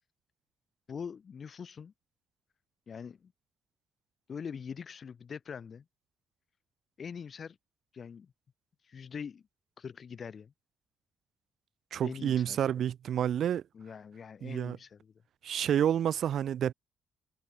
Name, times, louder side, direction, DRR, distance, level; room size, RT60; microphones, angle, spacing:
voice 1, 0.9-1.9 2.9-3.3 4.3-5.8 7.0-7.6 7.9-8.3 8.8-9.4 9.8-10.5 12.0-12.7 13.7-15.1, left 6 dB, 45° left, 3.0 m, -43 dB
voice 2, 11.9-13.6 14.4-14.8 15.4-16.7, right 9 dB, 65° right, 0.8 m, -29 dB
cardioid pair, 90°, 0 cm